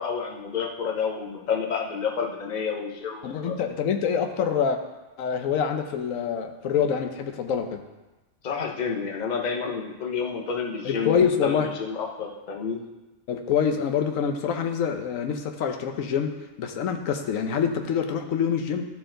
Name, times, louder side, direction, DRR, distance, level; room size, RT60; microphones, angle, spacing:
voice 1, 0.0-3.5 8.4-12.8, left 6 dB, 40° left, 1 dB, 0.9 m, -30 dB
voice 2, 3.2-4.8 5.2-7.8 10.8-11.7 13.3-18.9, left 7 dB, 75° left, 6 dB, 1.1 m, -26 dB
12.5 x 4.6 x 3.8 m, 1.1 s
omnidirectional pair, 1.4 m